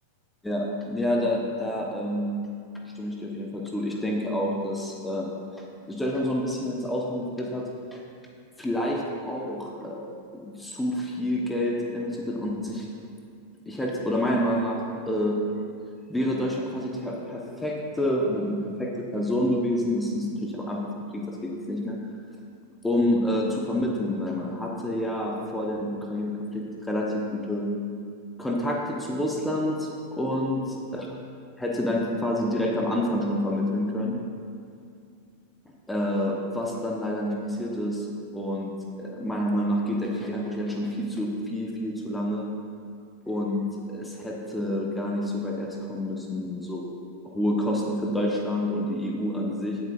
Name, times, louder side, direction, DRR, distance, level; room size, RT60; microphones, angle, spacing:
voice 1, 0.4-2.4 3.0-5.3 5.9-8.0 8.6-12.9 13.7-15.4 16.1-22.0 22.8-27.7 28.4-30.6 30.9-31.1 31.6-34.2 35.9-38.1 38.3-38.7 39.0-42.4 43.3-46.9 47.2-49.8, left 1 dB, 5° left, -1 dB, 1.0 m, -28 dB
16.5 x 7.0 x 2.5 m, 2.3 s
figure-of-eight pair, 90°, 0 cm